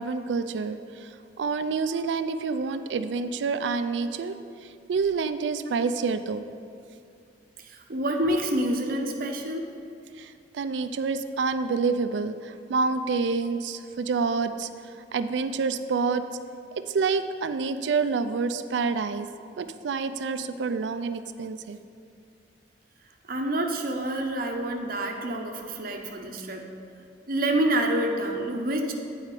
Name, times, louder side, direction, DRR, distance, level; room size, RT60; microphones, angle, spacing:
voice 1, 0.0-4.4 4.6-6.4 10.2-14.7 15.1-16.2 16.9-19.3 19.6-21.8, right 4 dB, 85° right, 11 dB, 0.4 m, -28 dB
voice 2, 7.7-9.7 23.3-26.7 27.3-28.9, right 1 dB, 55° right, 3 dB, 0.7 m, -27 dB
8.3 x 4.7 x 4.8 m, 2.5 s
head